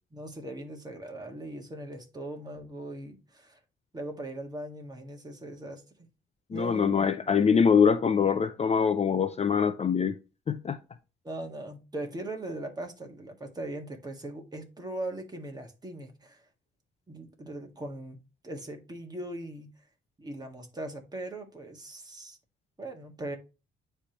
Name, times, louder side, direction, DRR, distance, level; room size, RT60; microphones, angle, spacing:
voice 1, 0.1-3.6 3.9-5.8 6.5-7.2 11.2-16.4 17.1-18.2 18.4-19.7 20.2-22.4 22.8-23.4, right 1 dB, 20° right, 1.7 m, -40 dB
voice 2, 6.5-10.2 10.5-10.8, left 6 dB, 30° left, 0.5 m, -24 dB
9.8 x 3.4 x 2.9 m
cardioid pair, 90°, 20 cm